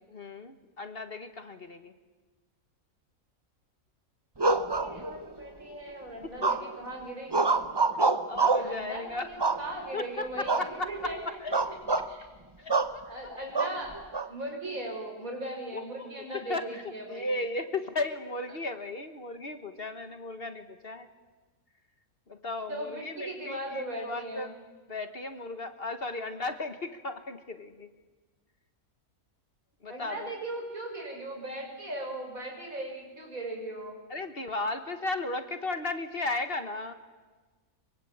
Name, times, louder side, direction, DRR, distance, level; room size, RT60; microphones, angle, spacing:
voice 1, 0.1-1.9 6.4-6.5 8.0-9.3 9.9-10.3 10.6-11.1 11.4-11.5 12.6-13.0 15.7-16.1 16.5-16.8 17.1-21.1 22.3-24.5 24.9-27.9 29.8-30.3 34.1-36.9, left 2 dB, 45° left, 8 dB, 1.5 m, -35 dB
sound 1, 4.4-5.4 6.4-6.9 7.3-8.8 9.4-10.0 10.5-10.7 11.0-11.2 11.5-12.1 12.7-13.0 13.5-14.3, right 3 dB, 25° right, 0.7 m, -26 dB
voice 2, 4.5-7.5 8.6-11.6 12.1-12.3 13.0-13.9 14.3-17.3 18.5-18.6 22.7-24.5 29.9-34.0, right 1 dB, 70° right, 2 dB, 5.9 m, -38 dB
24.0 x 23.0 x 8.6 m, 1.3 s
omnidirectional pair, 1.5 m